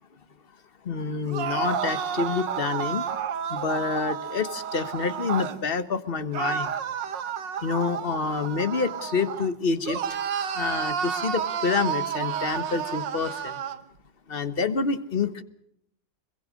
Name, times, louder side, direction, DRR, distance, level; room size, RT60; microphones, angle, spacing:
voice 1, 0.8-3.0 3.5-6.7 7.6-10.0 10.5-13.6 14.3-15.4, left 5 dB, 35° left, 13 dB, 1.2 m, -27 dB
sound 1, 1.3-5.6 6.3-9.5 9.8-13.8, right 8 dB, 75° right, 1.8 m, -31 dB
25.5 x 22.0 x 6.4 m, 0.72 s
omnidirectional pair, 2.0 m